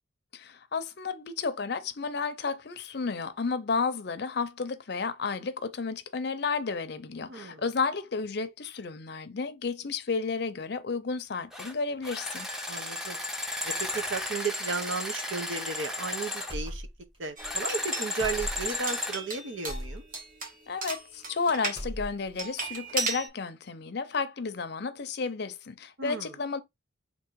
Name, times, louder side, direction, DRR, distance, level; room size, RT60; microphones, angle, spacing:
voice 1, 0.3-12.5 20.7-26.6, left 4 dB, 55° left, 0.5 m, -32 dB
voice 2, 7.3-7.6 12.7-13.2 13.6-16.9 17.2-20.1 26.0-26.3, right 4 dB, 70° right, 0.8 m, -34 dB
sound 1, 11.5-11.7 12.0-16.5 17.4-19.2, left 1 dB, 5° right, 0.6 m, -34 dB
sound 2, 16.5-17.2 17.4-17.6 18.2-18.8 19.7-20.0 20.8-21.4 21.6-22.4, equal, 25° right, 1.4 m, -38 dB
sound 3, 17.4-21.8 22.4-23.3, right 3 dB, 45° right, 1.2 m, -36 dB
3.6 x 2.7 x 4.5 m
head